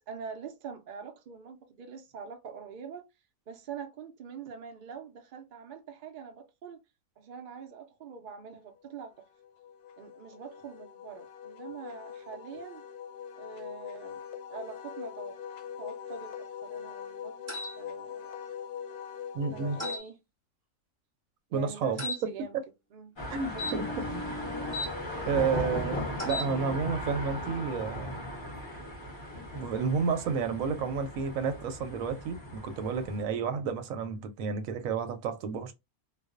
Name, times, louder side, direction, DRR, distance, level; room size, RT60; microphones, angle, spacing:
voice 1, 0.1-3.0 3.5-6.8 7.2-9.3 10.0-12.8 13.4-14.2 14.5-15.4 15.8-18.3 19.5-20.2 21.5-22.6 22.9-23.9, right 6 dB, 90° right, 0.4 m, -44 dB
Wind instrument woodwind instrument, 9.0-20.0, left 8 dB, 85° left, 1.1 m, -42 dB
sound 1, 17.5-17.7 19.8-20.0 22.0-22.2 23.5-24.9 26.1-26.5, left 2 dB, 15° right, 0.7 m, -35 dB
voice 2, 19.3-19.8 21.5-22.0 23.3-24.1 25.3-28.2 29.5-35.7, right 5 dB, 70° right, 0.9 m, -31 dB
sound 2, 23.2-33.2, left 1 dB, 30° left, 0.5 m, -37 dB
2.4 x 2.1 x 2.4 m
omnidirectional pair, 1.6 m